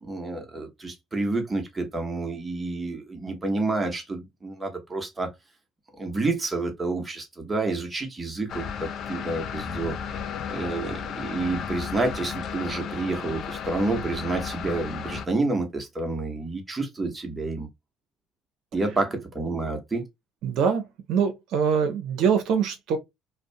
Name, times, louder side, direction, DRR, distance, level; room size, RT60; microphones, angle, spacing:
voice 1, 0.0-5.3 6.0-9.9 10.5-17.7 18.7-20.1, right 3 dB, 20° right, 1.0 m, -29 dB
sound 1, 8.5-15.3, left 7 dB, 60° left, 0.4 m, -34 dB
voice 2, 20.4-23.0, right 6 dB, 70° right, 0.7 m, -24 dB
2.5 x 2.1 x 2.6 m
supercardioid pair, 80°, 0 cm